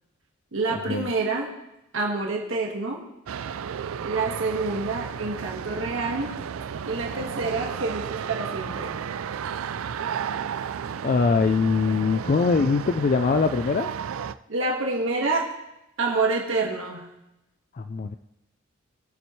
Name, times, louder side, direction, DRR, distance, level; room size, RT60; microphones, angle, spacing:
voice 1, 0.5-1.5 1.9-3.0 4.0-6.3 6.9-9.0 14.5-15.5 16.0-17.1, right 3 dB, 70° right, -1 dB, 1.6 m, -27 dB
sound 1, 3.3-14.3, right 7 dB, 85° right, 0.4 m, -33 dB
voice 2, 11.0-13.9 17.8-18.2, left 4 dB, 40° left, 8 dB, 0.4 m, -22 dB
20.0 x 7.2 x 3.1 m, 0.91 s
head